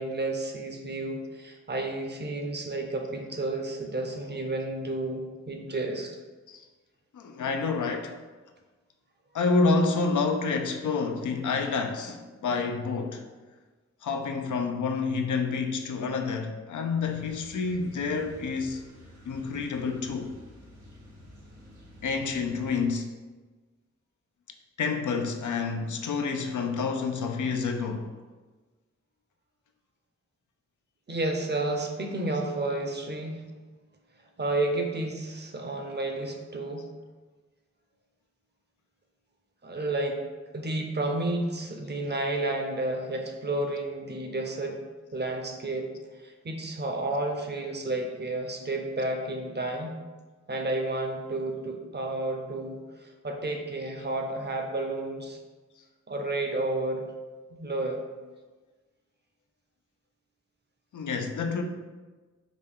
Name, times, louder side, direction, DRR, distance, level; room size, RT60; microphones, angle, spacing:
voice 1, 0.0-6.2 31.1-33.4 34.4-36.9 39.6-40.2 40.5-44.8 45.1-45.9 46.2-50.0 50.5-55.4 56.1-57.1 57.5-58.0, right 2 dB, 35° right, 3 dB, 0.6 m, -31 dB
voice 2, 7.1-8.2 9.3-13.2 14.0-18.9 19.3-20.3 22.0-23.1 24.8-28.1 60.9-61.6, left 4 dB, 85° left, 4 dB, 0.5 m, -28 dB
sound 1, 17.0-22.8, left 1 dB, 85° right, 0.9 m, -50 dB
5.0 x 2.2 x 3.5 m, 1.3 s
wide cardioid pair, 60°, 29 cm